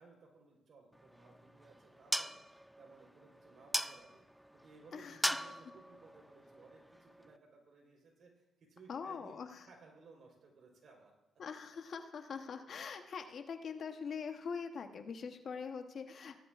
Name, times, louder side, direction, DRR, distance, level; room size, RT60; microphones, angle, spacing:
voice 1, 0.0-2.4 2.8-4.2 4.5-9.4 9.7-11.1 11.7-12.0, right 4 dB, 60° right, 1 dB, 4.0 m, -60 dB
sound 1, 0.9-7.4, equal, 5° right, 0.3 m, -41 dB
voice 2, 8.9-9.7 11.4-16.4, left 6 dB, 55° left, 7 dB, 1.0 m, -43 dB
17.0 x 11.5 x 2.5 m, 0.94 s
cardioid pair, 90°, 0 cm